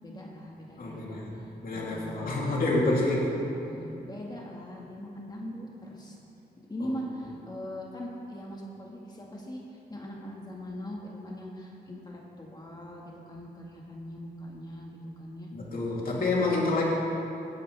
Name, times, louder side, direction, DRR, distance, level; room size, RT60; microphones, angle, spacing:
voice 1, 0.0-2.3 2.8-6.2 6.7-15.5 16.1-16.5, equal, 25° left, -3 dB, 1.6 m, -41 dB
voice 2, 0.8-3.3 6.8-6.9 15.5-16.9, left 2 dB, 55° left, -5 dB, 3.0 m, -28 dB
17.5 x 10.5 x 3.4 m, 2.8 s
wide cardioid pair, 105°, 17 cm